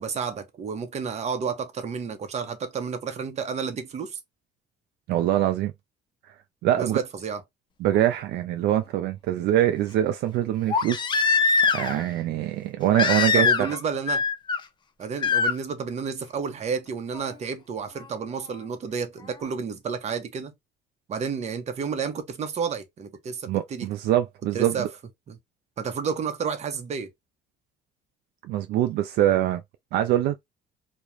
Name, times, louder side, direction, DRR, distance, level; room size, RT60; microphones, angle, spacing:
voice 1, 0.0-4.2 6.8-7.4 13.3-14.2 15.0-20.5 21.1-23.9 24.5-24.9 25.3-25.4 25.8-27.1, right 6 dB, 40° right, 0.7 m, -31 dB
voice 2, 5.1-5.7 6.6-7.0 7.8-13.7 23.5-24.9 28.4-29.6 29.9-30.4, right 12 dB, 75° right, 0.4 m, -24 dB
Crying sobbing, 8.0-8.1 10.7-12.0 12.9-13.8 14.1-14.6 15.2-15.5 17.1-17.2, left 5 dB, 30° left, 0.4 m, -22 dB
2.4 x 2.1 x 3.0 m
cardioid pair, 110°, 17 cm